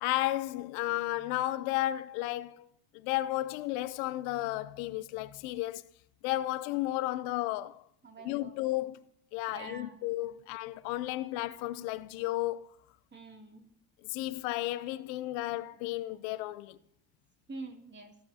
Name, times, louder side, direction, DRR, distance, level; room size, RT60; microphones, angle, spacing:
voice 1, 0.0-2.7 2.9-5.8 6.2-7.8 8.2-9.0 9.3-12.7 14.0-16.8, left 16 dB, 75° left, 0.7 m, -33 dB
voice 2, 8.0-8.5 9.5-10.0 13.1-13.7 17.5-18.2, right 3 dB, 25° right, 2.7 m, -46 dB
15.5 x 13.5 x 2.8 m
supercardioid pair, 80°, 41 cm